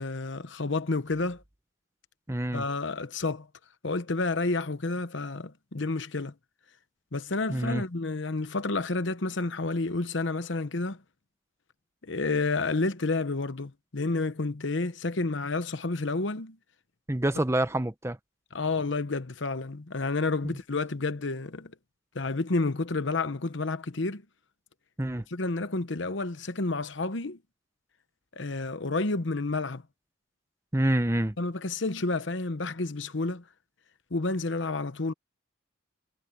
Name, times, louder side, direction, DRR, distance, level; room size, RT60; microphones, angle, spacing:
voice 1, 0.0-1.4 2.5-3.5 3.8-6.3 7.1-11.0 12.0-16.6 18.5-21.7 22.1-24.2 25.3-27.4 28.4-29.8 31.4-33.4 34.1-35.1, left 3 dB, 65° left, 1.0 m, -30 dB
voice 2, 2.3-2.6 7.5-7.8 17.1-18.2 20.4-20.6 25.0-25.2 30.7-31.4, right 1 dB, 15° right, 0.8 m, -27 dB
head